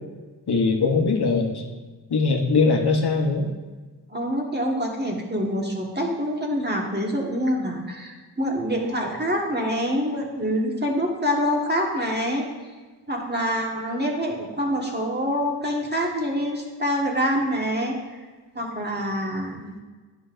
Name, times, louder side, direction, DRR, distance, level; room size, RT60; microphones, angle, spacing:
voice 1, 0.5-1.6 2.1-3.5, left 4 dB, 70° left, 3 dB, 1.0 m, -21 dB
voice 2, 4.1-12.5 13.1-18.0 18.5-19.7, equal, 25° right, -1 dB, 1.5 m, -26 dB
9.9 x 5.6 x 2.5 m, 1.3 s
cardioid pair, 45°, 41 cm